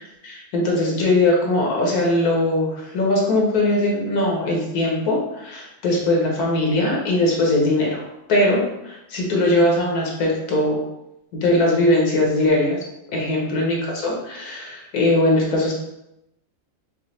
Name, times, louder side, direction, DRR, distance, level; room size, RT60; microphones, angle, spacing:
voice 1, 0.2-8.0 8.3-10.8 11.3-12.8 13.1-15.7, left 1 dB, 75° left, -1 dB, 1.4 m, -20 dB
5.8 x 2.1 x 3.1 m, 0.87 s
omnidirectional pair, 1.6 m